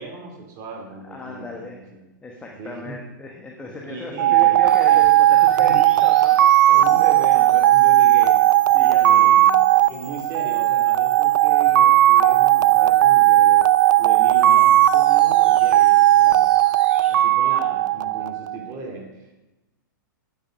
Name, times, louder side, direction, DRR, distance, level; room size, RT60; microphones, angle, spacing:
voice 1, 0.0-1.8 2.6-3.0 3.8-5.0 5.4-5.8 6.7-8.4 8.8-13.7 14.0-16.5 17.1-19.4, right 3 dB, 35° right, 0 dB, 3.0 m, -36 dB
voice 2, 0.9-1.8 2.2-6.5 8.7-9.3, left 3 dB, 10° left, -1 dB, 1.4 m, -36 dB
sound 1, 4.2-18.6, right 14 dB, 65° right, 0.4 m, -16 dB
sound 2, 4.7-17.2, right 1 dB, 10° right, 2.2 m, -42 dB
9.4 x 9.1 x 5.3 m, 1.1 s
hypercardioid pair, 135°, 11 cm